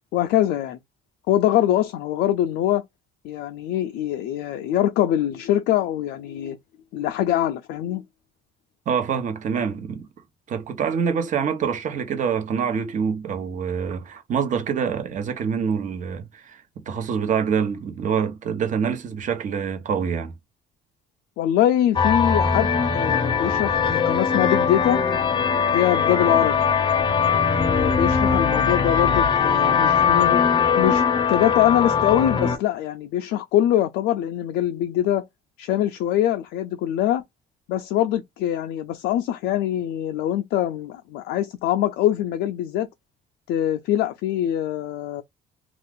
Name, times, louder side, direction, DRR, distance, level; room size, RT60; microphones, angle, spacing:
voice 1, 0.1-0.8 1.3-2.8 3.2-6.6 6.9-8.0 21.4-25.0 25.7-26.6 27.5-30.4 30.8-31.0 31.3-35.2 35.6-37.2 37.7-42.9 43.5-45.2, left 12 dB, 85° left, 0.4 m, -23 dB
voice 2, 8.9-10.1 10.5-20.3, right 7 dB, 50° right, 0.8 m, -26 dB
sound 1, 22.0-32.6, left 6 dB, 30° left, 0.6 m, -20 dB
2.4 x 2.3 x 3.5 m
cardioid pair, 110°, 17 cm